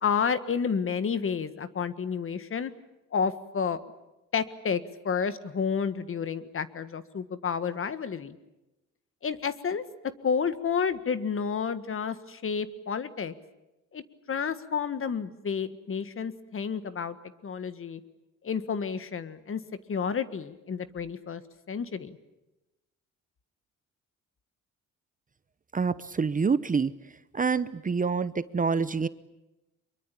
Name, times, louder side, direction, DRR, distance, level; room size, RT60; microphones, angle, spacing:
voice 1, 0.0-2.7 3.1-3.8 4.3-8.4 9.2-9.8 10.2-13.3 13.9-17.2 17.4-18.0 18.4-19.6 19.9-21.4 21.7-22.2, left 6 dB, 45° left, 13 dB, 1.6 m, -30 dB
voice 2, 25.7-26.9 27.3-29.1, right 5 dB, 25° right, 15 dB, 0.8 m, -26 dB
25.0 x 23.0 x 8.6 m, 0.98 s
cardioid pair, 90°, 30 cm